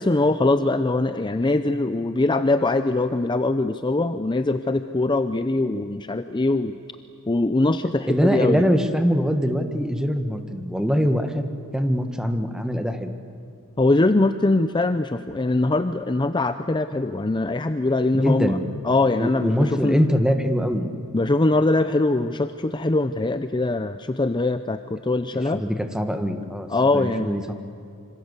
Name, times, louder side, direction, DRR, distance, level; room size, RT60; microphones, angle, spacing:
voice 1, 0.0-6.8 7.3-8.7 13.8-18.6 18.8-20.0 21.1-25.6 26.7-27.3, left 2 dB, 20° left, 10 dB, 0.6 m, -22 dB
voice 2, 8.1-11.4 11.7-13.1 18.1-18.6 19.2-20.9 25.5-26.7 26.9-27.5, equal, 5° right, 7 dB, 1.5 m, -23 dB
26.5 x 26.0 x 8.2 m, 2.4 s
head